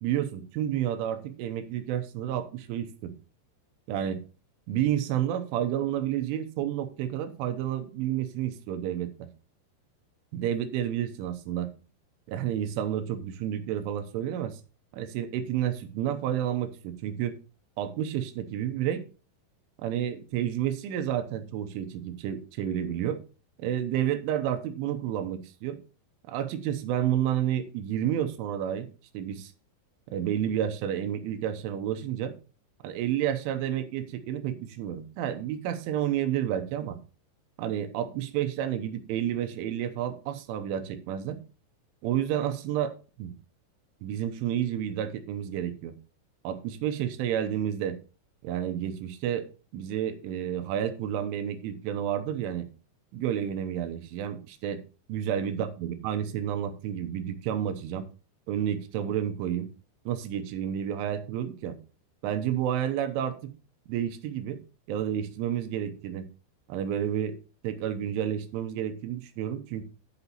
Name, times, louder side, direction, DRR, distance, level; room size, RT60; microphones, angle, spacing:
voice 1, 0.0-3.1 3.9-4.2 4.7-9.3 10.3-11.7 12.3-14.6 14.9-17.3 17.8-19.0 19.8-23.2 23.6-25.8 26.3-28.9 29.1-29.5 30.1-32.3 32.8-37.0 37.6-41.4 42.0-43.3 44.0-46.0 46.4-48.0 48.4-49.5 49.7-52.7 53.1-54.8 55.1-58.1 58.5-59.7 60.1-61.8 62.2-63.5 63.9-64.6 64.9-66.3 66.7-67.4 67.6-69.8, right 10 dB, 80° right, 8 dB, 3.3 m, -30 dB
11.5 x 6.0 x 4.0 m, 0.35 s
omnidirectional pair, 5.6 m